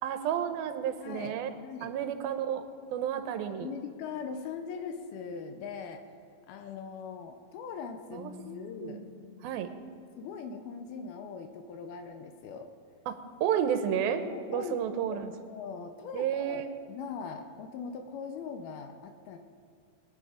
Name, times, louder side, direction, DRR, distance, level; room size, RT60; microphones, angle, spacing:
voice 1, 0.0-1.5 1.8-2.7 2.9-3.7 8.1-8.3 8.8-9.0 9.4-9.7 13.1-14.2 14.5-15.3 16.1-16.7, right 9 dB, 85° right, 9 dB, 2.6 m, -31 dB
voice 2, 1.0-1.3 1.6-1.9 3.6-6.0 6.5-9.0 10.2-12.7 14.2-14.8 15.1-16.6 16.9-19.4, left 6 dB, 85° left, 7 dB, 2.7 m, -41 dB
Keyboard (musical), 8.1-10.9, left 4 dB, 70° left, 0.8 m, -51 dB
21.5 x 10.0 x 5.0 m, 2.4 s
omnidirectional pair, 4.2 m